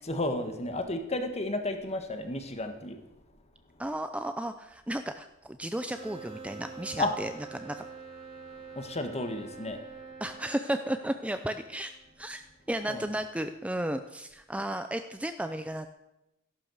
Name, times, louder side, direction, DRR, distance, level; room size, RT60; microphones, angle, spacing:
voice 1, 0.0-3.0 7.0-7.1 8.7-9.8 12.9-13.1, left 2 dB, 30° left, 6 dB, 1.6 m, -32 dB
voice 2, 3.8-7.8 10.2-12.4 12.7-15.9, right 1 dB, 5° right, 8 dB, 0.5 m, -34 dB
sound 1, 5.9-12.3, right 5 dB, 85° right, 6.0 m, -46 dB
13.5 x 11.5 x 6.5 m, 0.91 s
head